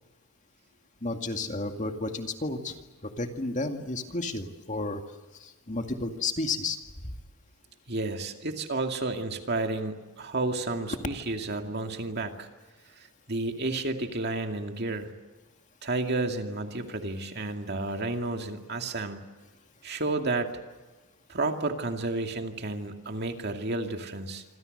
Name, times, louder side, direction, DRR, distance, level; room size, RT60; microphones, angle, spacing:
voice 1, 1.0-2.8 3.0-5.0 5.4-7.2, left 2 dB, 35° left, 5 dB, 2.2 m, -32 dB
voice 2, 7.9-12.5 12.9-15.1 15.8-19.2 19.8-20.5 21.3-24.4, right 2 dB, 45° right, 4 dB, 2.4 m, -31 dB
26.5 x 26.5 x 6.7 m, 1.2 s
head